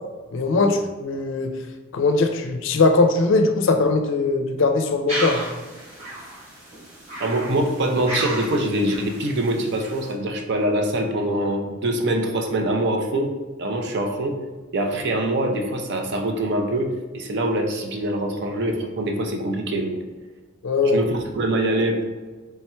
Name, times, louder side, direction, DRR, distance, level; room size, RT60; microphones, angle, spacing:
voice 1, 0.3-1.6 1.9-5.4 20.6-21.0, left 3 dB, 65° left, 5 dB, 0.4 m, -20 dB
sound 1, 5.1-10.1, right 1 dB, 35° right, 1.3 m, -33 dB
voice 2, 7.2-13.3 13.6-14.3 14.7-16.9 17.1-20.0 20.8-22.1, right 1 dB, 60° right, 3 dB, 0.5 m, -24 dB
4.3 x 3.4 x 2.2 m, 1.3 s
head